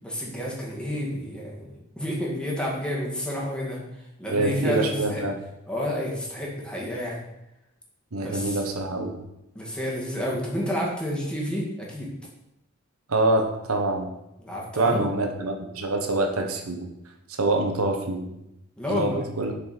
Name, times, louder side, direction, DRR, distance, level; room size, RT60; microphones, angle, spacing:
voice 1, 0.0-5.2 5.7-7.2 8.2-8.6 9.6-12.1 14.4-15.0 18.8-19.2, equal, 5° left, -4 dB, 1.9 m, -30 dB
voice 2, 4.3-5.3 8.1-9.2 13.1-14.1 14.7-16.9 17.4-18.3 18.9-19.5, right 2 dB, 85° right, 4 dB, 1.2 m, -25 dB
7.2 x 4.7 x 6.0 m, 0.87 s
head